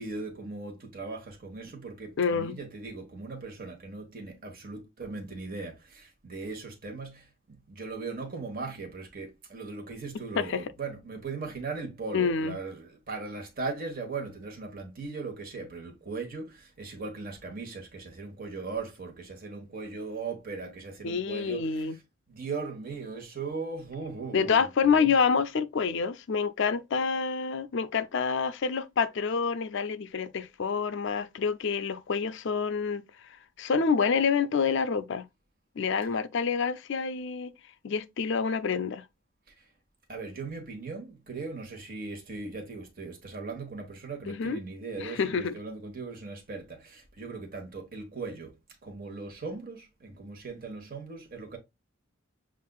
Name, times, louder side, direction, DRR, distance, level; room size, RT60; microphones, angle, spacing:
voice 1, 0.0-7.2 7.7-21.9 22.3-25.1 40.1-48.5 48.8-51.6, right 4 dB, 45° right, 1.2 m, -38 dB
voice 2, 2.2-2.6 10.4-10.7 12.1-12.6 21.0-22.0 24.3-33.0 33.6-35.2 35.8-37.5 37.8-39.0 44.3-44.6 45.0-45.5, left 5 dB, 60° left, 0.4 m, -27 dB
7.2 x 2.5 x 2.3 m
head